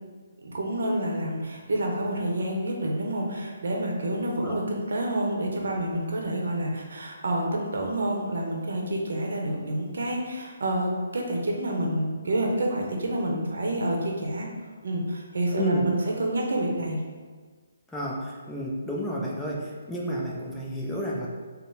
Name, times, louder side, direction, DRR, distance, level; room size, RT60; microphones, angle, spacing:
voice 1, 0.4-14.5 14.8-17.0, right 1 dB, 75° right, 0 dB, 0.7 m, -28 dB
voice 2, 15.5-15.9 17.9-21.3, equal, 5° left, -4 dB, 0.5 m, -31 dB
3.9 x 2.0 x 3.9 m, 1.5 s
hypercardioid pair, 155°, 0 cm